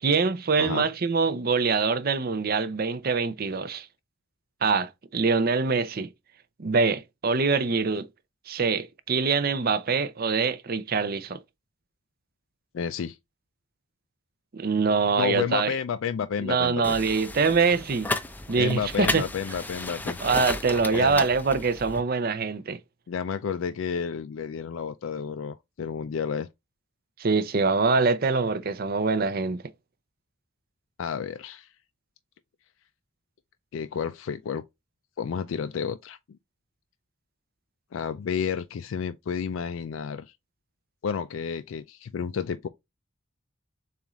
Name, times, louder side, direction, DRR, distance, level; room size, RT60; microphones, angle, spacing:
voice 1, 0.0-3.9 4.6-6.1 6.6-8.1 8.5-11.4 14.5-15.7 16.4-18.1 18.5-19.2 20.2-22.8 27.2-29.6, right 4 dB, 45° right, 0.5 m, -24 dB
voice 2, 12.7-13.2 15.2-17.0 18.6-20.2 20.9-21.2 23.1-26.5 31.0-31.7 33.7-34.6 35.2-36.2 37.9-40.3 41.0-42.7, left 7 dB, 75° left, 0.4 m, -31 dB
sound 1, 16.8-22.0, left 2 dB, 10° left, 0.5 m, -33 dB
6.9 x 2.5 x 3.0 m
head